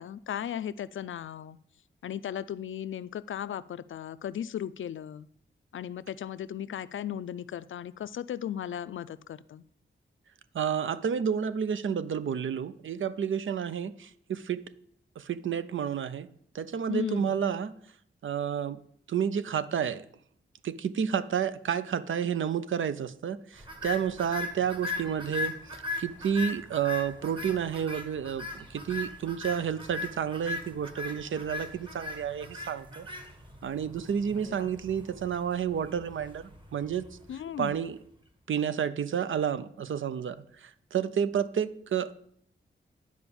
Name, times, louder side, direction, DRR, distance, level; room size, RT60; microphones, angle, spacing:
voice 1, 0.0-1.6 2.0-5.3 5.7-9.6 16.9-17.3 34.4-34.8 37.3-37.8, left 9 dB, 85° left, 0.4 m, -36 dB
voice 2, 10.5-14.7 15.2-16.3 16.5-17.8 18.2-18.8 19.1-20.1 20.6-33.1 33.6-37.1 37.6-38.0 38.5-42.1, right 8 dB, 85° right, 0.6 m, -30 dB
sound 1, 23.6-37.9, left 3 dB, 25° right, 1.3 m, -39 dB
10.5 x 4.9 x 7.0 m
wide cardioid pair, 160°, 20 cm